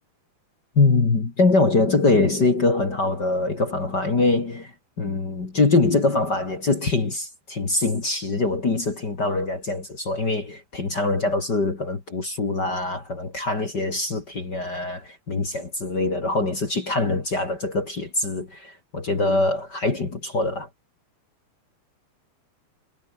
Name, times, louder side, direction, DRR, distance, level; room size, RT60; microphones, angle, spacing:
voice 1, 0.8-4.7 5.0-20.7, left 3 dB, 30° left, 2.7 m, -23 dB
omnidirectional pair, 4.8 m